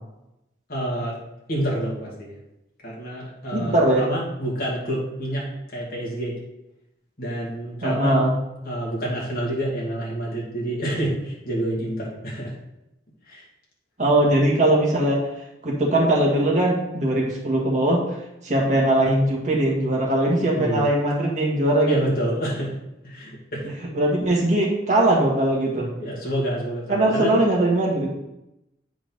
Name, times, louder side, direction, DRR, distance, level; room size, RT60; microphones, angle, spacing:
voice 1, 0.7-1.2 1.5-2.4 2.8-5.5 5.7-6.4 7.2-8.2 8.6-12.5 13.3-13.4 20.5-20.9 21.8-22.7 23.0-23.8 26.0-27.3, right 1 dB, 50° left, -5 dB, 2.0 m, -28 dB
voice 2, 3.5-4.0 7.8-8.3 14.0-15.2 15.6-18.0 18.4-22.0 23.9-25.9 26.9-28.1, right 1 dB, 40° right, -2 dB, 1.6 m, -20 dB
8.4 x 4.4 x 3.9 m, 0.89 s
head